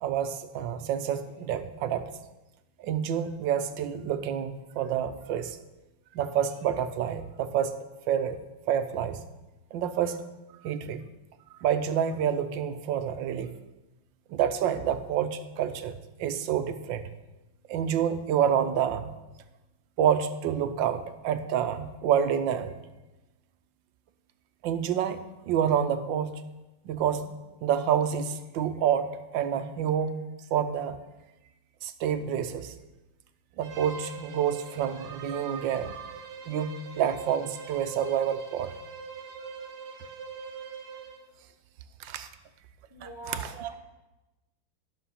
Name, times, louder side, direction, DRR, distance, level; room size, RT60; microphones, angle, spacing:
voice 1, 0.0-2.1 2.8-5.6 6.1-7.7 8.1-8.4 8.7-9.2 9.7-10.2 10.6-11.0 11.6-13.5 14.3-17.1 17.7-19.1 20.0-22.8 24.6-26.4 26.8-27.3 27.6-30.2 30.5-31.0 31.8-32.7 33.6-36.2 36.5-38.7 42.0-42.3 43.0-43.7, right 9 dB, 80° right, 10 dB, 1.4 m, -28 dB
Bowed string instrument, 33.6-41.3, right 4 dB, 60° right, 1.8 m, -43 dB
voice 2, 42.9-43.7, equal, 30° right, 2 dB, 0.5 m, -43 dB
12.5 x 6.8 x 5.6 m, 1.0 s
omnidirectional pair, 2.1 m